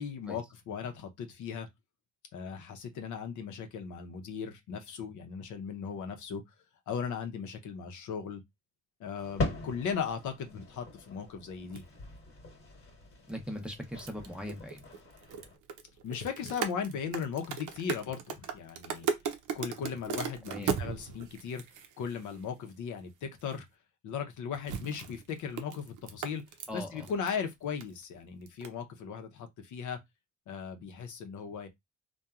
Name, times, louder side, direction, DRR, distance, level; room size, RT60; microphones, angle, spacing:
voice 1, 0.0-1.7 2.3-6.4 6.9-8.4 9.0-11.8 16.0-19.1 19.5-21.6 22.0-23.7 24.0-26.4 26.7-30.0 30.5-31.7, left 6 dB, 80° left, 0.7 m, -37 dB
sound 1, 9.2-15.6, left 2 dB, 45° left, 1.2 m, -41 dB
sound 2, 11.7-11.8 13.6-22.7 23.4-23.5 24.5-27.4 27.6-28.0 28.5-28.7, right 6 dB, 85° right, 0.6 m, -37 dB
voice 2, 13.3-14.8 20.5-20.8 26.7-27.1, equal, 5° right, 0.7 m, -40 dB
2.8 x 2.3 x 2.3 m
cardioid pair, 90°, 30 cm